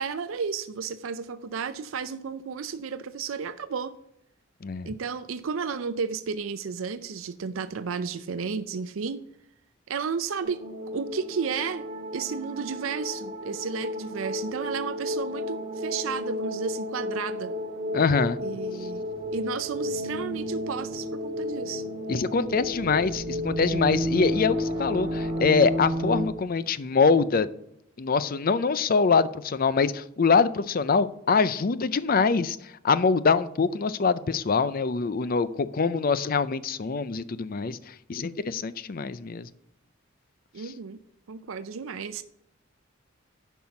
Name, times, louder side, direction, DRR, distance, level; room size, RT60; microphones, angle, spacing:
voice 1, 0.0-3.9 4.9-9.2 9.9-10.6 10.9-11.8 12.1-17.5 18.4-19.0 19.3-21.8 40.5-41.0 41.3-42.2, right 6 dB, 90° right, 12 dB, 0.5 m, -32 dB
sound 1, 10.4-26.3, left 1 dB, 25° right, 2.3 m, -32 dB
voice 2, 17.9-18.4 22.1-27.5 28.0-32.6 32.8-37.8 38.1-39.5, left 5 dB, 45° left, 15 dB, 0.5 m, -24 dB
10.5 x 5.6 x 5.8 m, 0.78 s
head